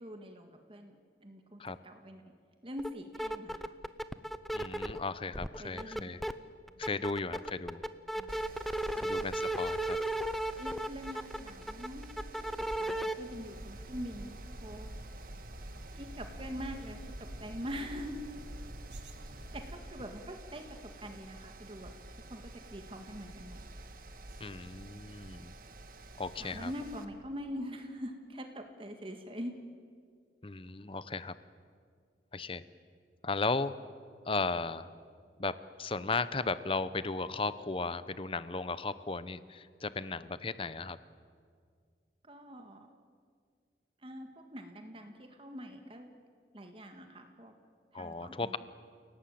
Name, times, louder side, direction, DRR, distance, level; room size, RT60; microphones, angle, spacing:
voice 1, 0.0-2.3 2.6-3.7 5.6-6.3 8.2-8.3 8.9-9.3 10.6-12.1 12.4-14.9 16.0-18.2 19.5-22.0 22.3-23.6 26.3-29.6 42.2-42.9 44.0-46.1 46.5-47.6 47.9-48.6, equal, 30° right, 5 dB, 1.8 m, -44 dB
sound 1, 2.8-2.9 3.1-5.0 5.3-6.3 6.7-13.1, right 1 dB, ahead, 0.7 m, -35 dB
voice 2, 4.5-6.2 6.8-7.8 9.0-10.0 24.4-25.5 26.2-26.7 30.4-31.3 32.3-32.6 33.2-33.7 34.3-34.9 35.4-41.0 47.9-48.6, left 3 dB, 30° left, 14 dB, 0.8 m, -35 dB
Mechanical fan, 8.3-27.0, right 2 dB, 55° right, 1.5 m, -50 dB
sound 2, 13.3-19.8, equal, 80° right, 2.1 m, -47 dB
29.5 x 18.0 x 8.6 m, 2.1 s
head